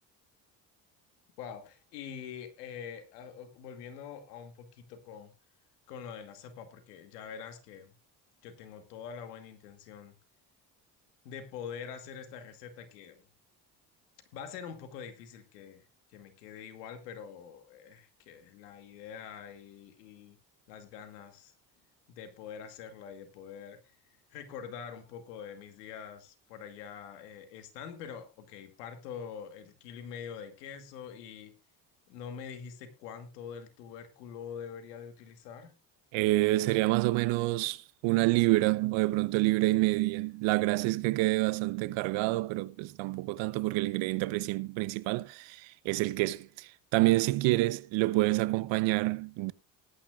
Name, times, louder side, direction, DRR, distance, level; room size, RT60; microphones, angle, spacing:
voice 1, 1.4-5.3 5.9-7.9 8.4-10.1 11.2-13.2 14.3-15.8 16.1-20.4 20.7-21.5 22.1-23.8 24.3-31.5 32.1-35.7, left 7 dB, 90° left, 2.3 m, -45 dB
voice 2, 36.1-49.5, right 20 dB, 75° right, 0.9 m, -28 dB
19.5 x 9.9 x 2.4 m
hypercardioid pair, 65°, 46 cm